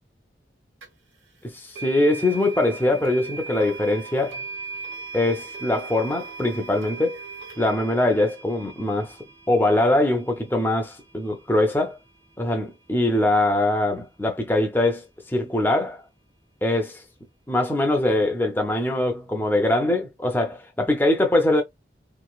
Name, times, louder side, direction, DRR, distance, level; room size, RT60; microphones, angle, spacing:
sound 1, 0.8-0.9 1.7-12.7, right 4 dB, 90° right, 1.1 m, -39 dB
voice 1, 1.4-4.4 5.1-7.2 7.6-9.1 9.5-12.0 12.4-16.0 16.6-17.0 17.5-21.6, left 1 dB, 10° left, 0.6 m, -22 dB
3.1 x 2.8 x 2.3 m
head